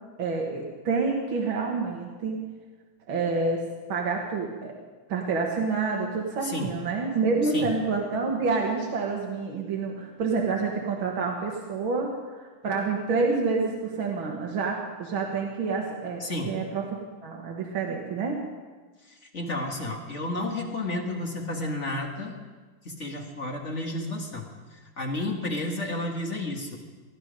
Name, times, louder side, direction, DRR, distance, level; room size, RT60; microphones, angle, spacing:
voice 1, 0.2-2.4 3.1-4.7 5.1-16.8 17.2-18.4, right 4 dB, 70° right, -1 dB, 2.2 m, -28 dB
voice 2, 6.4-6.8 7.5-7.7 16.2-16.6 19.1-22.4 22.9-24.5 25.0-26.8, left 2 dB, 35° left, 2 dB, 1.8 m, -31 dB
20.5 x 13.0 x 5.2 m, 1.4 s
omnidirectional pair, 2.4 m